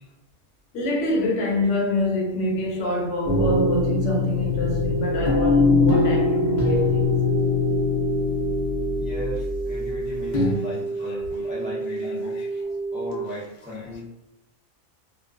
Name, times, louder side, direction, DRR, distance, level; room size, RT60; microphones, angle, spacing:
voice 1, 0.7-7.1, left 1 dB, 70° left, 0.9 m, -26 dB
sound 1, 3.2-10.6, left 2 dB, 50° left, 0.5 m, -22 dB
sound 2, 7.0-13.1, right 3 dB, 75° right, 0.9 m, -30 dB
voice 2, 9.0-12.4 12.9-14.0, left 2 dB, 10° right, 0.4 m, -36 dB
2.3 x 2.2 x 2.4 m
omnidirectional pair, 1.3 m